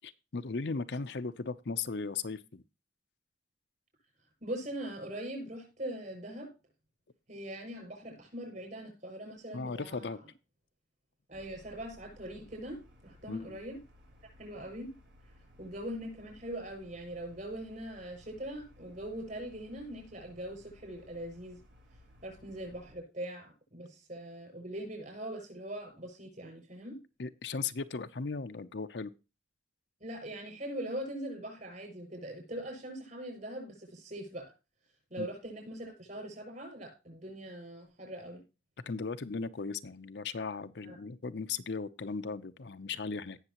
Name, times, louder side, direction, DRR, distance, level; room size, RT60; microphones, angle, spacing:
voice 1, 0.0-2.6 9.5-10.2 13.3-13.6 27.2-29.1 35.2-35.3 38.8-43.4, left 4 dB, 65° left, 10 dB, 0.7 m, -37 dB
voice 2, 4.4-6.5 7.3-10.2 11.3-13.8 14.4-14.9 15.6-21.6 22.2-27.0 30.0-34.5 35.1-38.4 40.8-41.0, right 1 dB, 45° right, 3 dB, 6.5 m, -42 dB
sound 1, 11.3-23.0, equal, 80° right, 3.7 m, -59 dB
18.0 x 6.6 x 3.0 m, 0.30 s
head